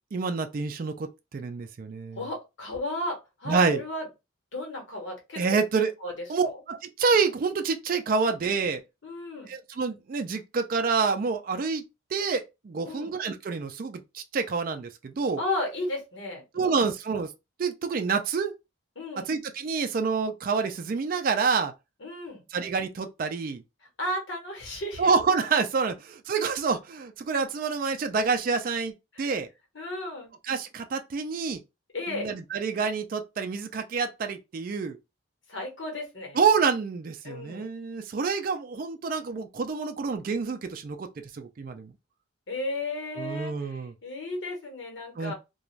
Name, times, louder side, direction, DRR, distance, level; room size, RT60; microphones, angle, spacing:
voice 1, 0.1-2.2 3.5-3.8 5.4-5.9 6.3-8.8 9.5-11.9 12.1-15.4 16.5-17.3 17.6-18.5 19.3-21.7 22.5-23.6 25.0-29.5 30.5-31.6 32.1-35.0 36.3-41.1 41.3-41.9 43.2-43.9 45.2-45.3, right 5 dB, 45° right, 0.3 m, -27 dB
voice 2, 2.2-4.1 4.5-5.4 6.0-6.1 6.4-6.6 9.0-9.5 12.8-13.1 15.4-16.8 19.0-19.3 22.0-22.4 24.0-25.1 29.1-29.3 29.7-30.3 31.9-32.3 35.5-36.4 37.2-37.6 42.5-45.3, left 1 dB, 65° left, 1.0 m, -34 dB
2.4 x 2.2 x 3.0 m
head